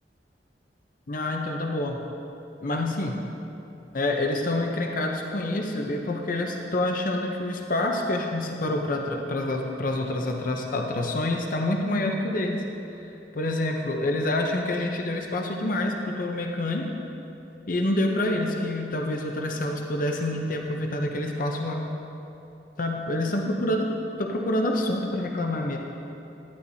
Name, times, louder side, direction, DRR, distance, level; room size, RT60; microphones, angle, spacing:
voice 1, 1.1-2.0 2.6-3.2 3.9-12.6 12.9-13.1 13.3-16.9 17.7-21.9 22.8-25.8, left 1 dB, 50° left, 2 dB, 0.6 m, -27 dB
11.5 x 9.8 x 2.7 m, 2.9 s
head